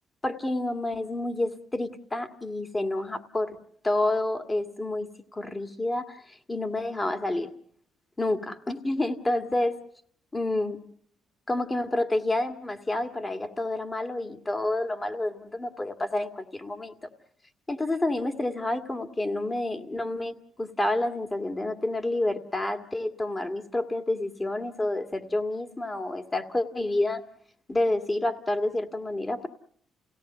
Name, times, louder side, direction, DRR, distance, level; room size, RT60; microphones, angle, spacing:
voice 1, 0.2-3.6 3.8-7.5 8.2-9.8 10.3-10.8 11.5-17.0 17.7-27.2 27.7-29.5, left 2 dB, 20° left, 7 dB, 1.9 m, -29 dB
29.0 x 17.5 x 6.8 m, 0.64 s
cardioid pair, 90°, 0 cm